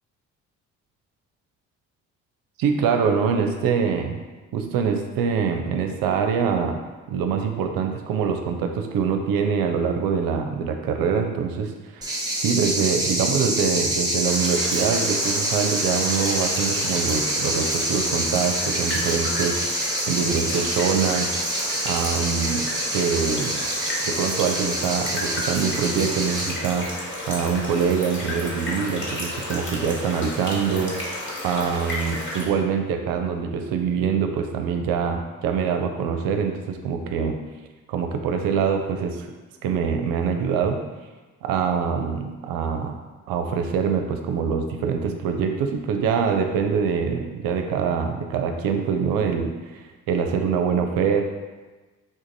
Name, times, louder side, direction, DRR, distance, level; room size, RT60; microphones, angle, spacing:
voice 1, 2.6-4.2 4.5-6.8 7.1-19.6 20.1-21.4 21.8-22.7 22.9-23.6 24.0-31.1 31.4-37.4 37.9-39.3 39.6-40.8 41.4-43.0 43.3-51.2, right 6 dB, 65° right, 5 dB, 0.5 m, -24 dB
sound 1, 12.0-26.5, right 1 dB, 10° right, 0.8 m, -26 dB
sound 2, 14.2-32.4, left 1 dB, 30° left, 1.3 m, -33 dB
3.7 x 2.5 x 2.6 m, 1.3 s
hypercardioid pair, 50°, 38 cm